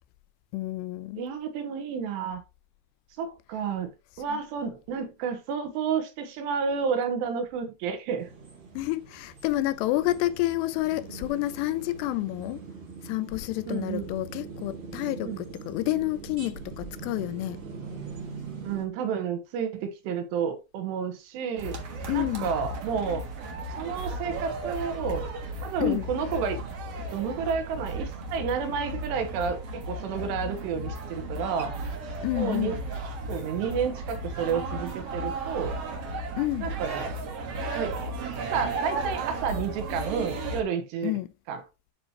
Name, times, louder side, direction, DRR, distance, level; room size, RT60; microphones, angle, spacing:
voice 1, 0.5-1.3 4.3-4.4 8.7-12.6 13.0-17.6 22.1-22.5 25.8-26.1 32.2-32.8 36.4-36.7 41.0-41.3, left 16 dB, 90° left, 2.8 m, -29 dB
voice 2, 1.2-2.4 3.2-3.9 4.2-8.3 13.7-14.1 15.2-15.4 18.6-21.8 22.1-23.2 23.8-25.3 25.6-26.6 27.1-31.8 32.3-32.8 33.3-35.7 36.6-37.1 37.7-37.9 38.5-41.1 41.5-41.6, right 6 dB, 90° right, 3.4 m, -30 dB
sound 1, 8.2-18.8, right 4 dB, 40° right, 2.9 m, -42 dB
sound 2, 21.6-40.6, right 2 dB, 70° right, 1.5 m, -35 dB
11.5 x 4.4 x 2.9 m
omnidirectional pair, 4.8 m